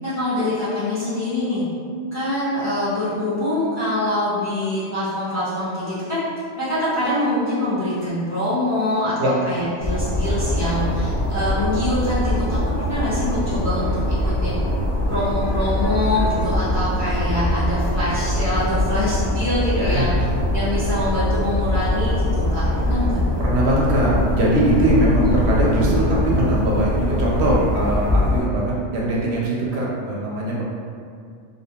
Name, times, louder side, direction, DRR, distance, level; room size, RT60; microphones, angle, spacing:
voice 1, 0.0-1.6 2.1-6.2 6.5-14.6 15.1-20.1 20.5-23.2 25.2-25.4 25.8-26.0, left 1 dB, 25° left, -12 dB, 0.3 m, -24 dB
sound 1, 9.8-28.4, left 1 dB, 15° right, 0.8 m, -22 dB
voice 2, 19.8-20.1 23.4-30.6, right 1 dB, 65° right, -4 dB, 0.7 m, -21 dB
2.3 x 2.1 x 2.8 m, 2.2 s
omnidirectional pair, 1.4 m